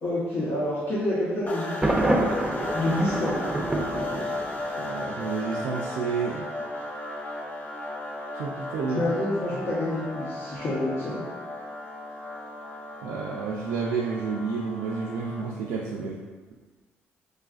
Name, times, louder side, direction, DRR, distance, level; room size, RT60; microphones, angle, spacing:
voice 1, 0.0-1.9 2.7-3.4 8.9-11.2, left 1 dB, 70° left, -10 dB, 1.0 m, -28 dB
sound 1, 1.5-15.7, left 1 dB, 35° left, 0.6 m, -35 dB
Thunder, 1.8-4.8, right 1 dB, 15° right, 0.5 m, -27 dB
voice 2, 4.8-6.4 8.3-9.1 9.5-9.6 13.0-16.2, right 5 dB, 85° right, -3 dB, 0.3 m, -30 dB
4.6 x 2.4 x 2.4 m, 1.3 s
cardioid pair, 85°, 5 cm